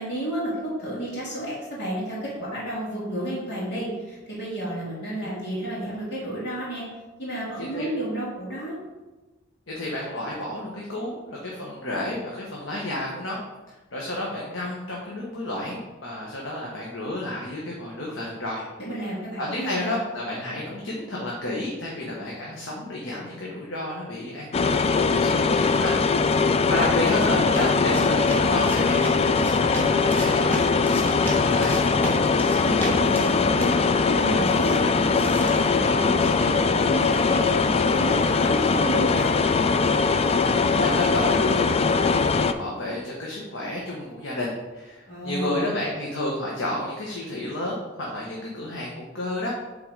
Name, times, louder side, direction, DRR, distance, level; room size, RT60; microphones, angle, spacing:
voice 1, 0.0-6.8 7.2-8.7 18.8-20.0 32.5-33.7 34.1-37.6 37.9-39.3 45.1-45.7, right 1 dB, 60° left, -6 dB, 2.4 m, -31 dB
voice 2, 7.6-7.9 9.7-13.4 13.7-18.6 19.4-25.9 26.7-31.8 40.7-49.5, left 1 dB, 90° left, -3 dB, 1.2 m, -31 dB
sound 1, 24.5-42.5, left 4 dB, 30° left, 0.3 m, -21 dB
sound 2, 26.4-36.5, equal, 10° left, 1.2 m, -35 dB
7.7 x 3.9 x 4.7 m, 1.2 s
head